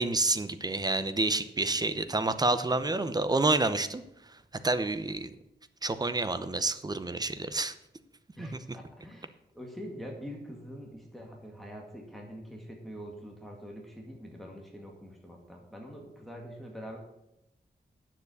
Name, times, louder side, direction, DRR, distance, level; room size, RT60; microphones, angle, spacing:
voice 1, 0.0-4.0 4.6-5.3 5.8-7.7 8.4-8.6, right 2 dB, 20° right, 11 dB, 0.7 m, -28 dB
voice 2, 8.4-17.0, equal, ahead, 0 dB, 2.0 m, -44 dB
9.5 x 7.4 x 8.1 m, 0.85 s
wide cardioid pair, 145°, 18 cm